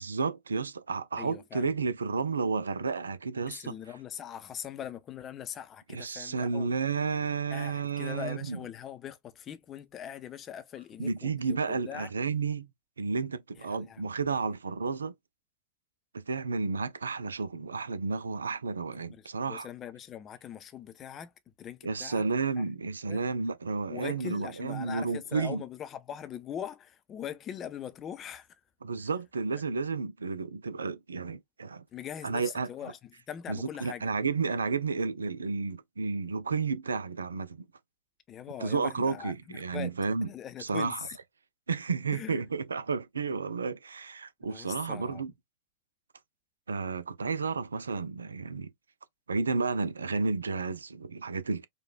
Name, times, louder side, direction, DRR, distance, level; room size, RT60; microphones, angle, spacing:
voice 1, 0.0-3.8 5.9-8.6 11.0-12.7 13.0-15.1 16.1-19.7 21.8-25.6 28.8-31.8 32.2-32.7 33.5-37.6 38.6-40.3 40.6-41.1 41.7-45.3 46.7-48.7 49.3-51.7, right 4 dB, 75° right, 0.3 m, -32 dB
voice 2, 1.2-1.7 3.5-6.7 7.5-12.1 13.6-14.0 14.3-14.4 18.9-21.3 21.6-22.3 22.6-22.7 23.1-23.2 23.9-28.5 31.9-33.0 33.3-34.1 38.3-39.9 40.2-41.1 42.1-42.4 44.5-45.2, left 9 dB, 30° left, 0.6 m, -41 dB
4.7 x 2.2 x 2.3 m
figure-of-eight pair, 90°, 0 cm